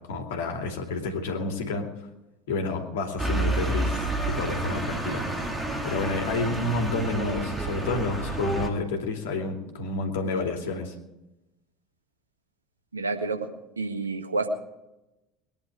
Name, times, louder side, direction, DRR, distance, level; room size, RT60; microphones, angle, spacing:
voice 1, 0.0-1.9 2.5-5.2 5.8-10.9, left 3 dB, 65° left, 3 dB, 2.7 m, -30 dB
sound 1, 3.2-8.7, right 2 dB, 10° right, 2.9 m, -29 dB
voice 2, 12.9-13.5 13.8-14.5, right 3 dB, 85° right, 6 dB, 1.5 m, -29 dB
22.0 x 10.5 x 4.9 m, 0.95 s
figure-of-eight pair, 70°, 0 cm